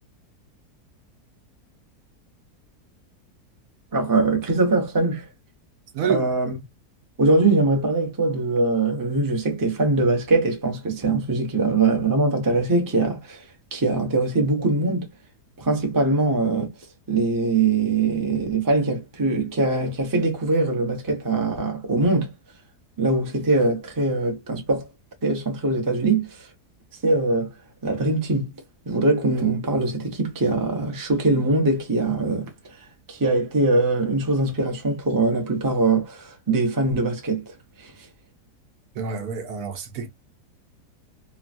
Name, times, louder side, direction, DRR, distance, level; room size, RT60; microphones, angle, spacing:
voice 1, 3.9-5.3 6.1-6.6 7.2-13.5 13.7-15.1 15.6-16.7 17.1-22.3 23.0-24.9 25.2-26.5 27.0-27.5 27.8-28.5 28.9-32.8 33.1-37.4 37.8-37.9, right 3 dB, 20° right, 0.7 m, -22 dB
voice 2, 5.9-6.3 38.9-40.1, right 7 dB, 70° right, 1.2 m, -27 dB
3.1 x 2.3 x 2.5 m
omnidirectional pair, 1.7 m